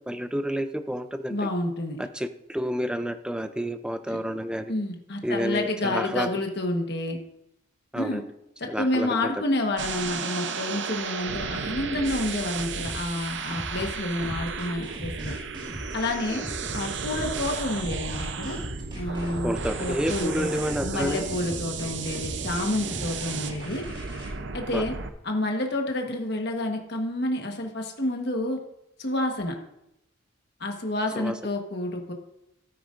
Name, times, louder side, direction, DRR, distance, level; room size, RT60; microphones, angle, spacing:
voice 1, 0.0-1.5 2.0-4.7 5.2-6.3 7.9-8.2 8.7-9.3 16.3-16.4 19.4-21.2 24.7-24.8 31.2-31.3, equal, 5° right, 9 dB, 0.4 m, -29 dB
voice 2, 1.3-2.0 4.1-4.2 4.7-7.2 7.9-8.2 8.6-15.3 15.9-16.4 16.7-18.6 18.9-23.8 24.5-24.9 25.2-28.6 29.0-29.6 30.6-32.1, left 1 dB, 55° left, 3 dB, 1.3 m, -29 dB
sound 1, 9.8-25.1, right 5 dB, 60° right, 0.7 m, -34 dB
sound 2, 12.8-24.3, right 1 dB, 25° right, 2.3 m, -39 dB
13.0 x 9.3 x 2.6 m, 0.84 s
head